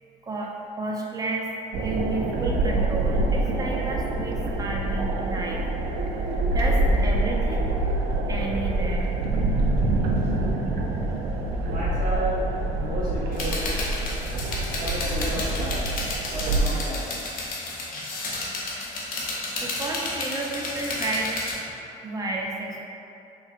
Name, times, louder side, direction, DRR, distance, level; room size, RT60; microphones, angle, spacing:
voice 1, 0.2-7.7 8.3-9.1 19.6-21.3 22.0-22.8, right 2 dB, 20° right, -1 dB, 0.5 m, -32 dB
sound 1, 1.7-16.6, right 2 dB, 75° right, 0.4 m, -26 dB
voice 2, 11.6-12.4 12.7-13.6 14.8-15.9 16.3-17.2, equal, 50° right, -7 dB, 1.0 m, -32 dB
sound 2, 13.3-21.5, left 2 dB, 55° left, 0.7 m, -32 dB
3.5 x 3.1 x 2.4 m, 2.7 s
cardioid pair, 110°, 17 cm